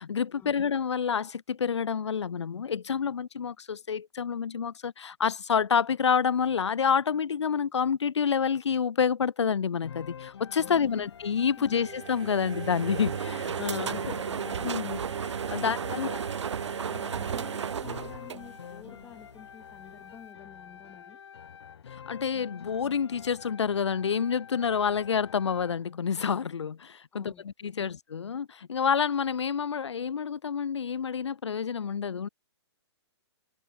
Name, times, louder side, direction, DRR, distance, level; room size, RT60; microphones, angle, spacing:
voice 1, 0.0-14.2 14.5-16.2 21.9-32.3, left 7 dB, 85° left, 1.5 m, -28 dB
sound 1, 9.8-25.9, left 8 dB, 70° left, 6.0 m, -47 dB
voice 2, 10.6-11.1 11.6-11.9 13.7-14.9 16.9-21.2 27.1-27.5 27.8-27.9, left 8 dB, 15° left, 6.2 m, -51 dB
sound 2, 11.7-19.0, right 7 dB, 90° right, 0.7 m, -34 dB
open air
hypercardioid pair, 150°, 14 cm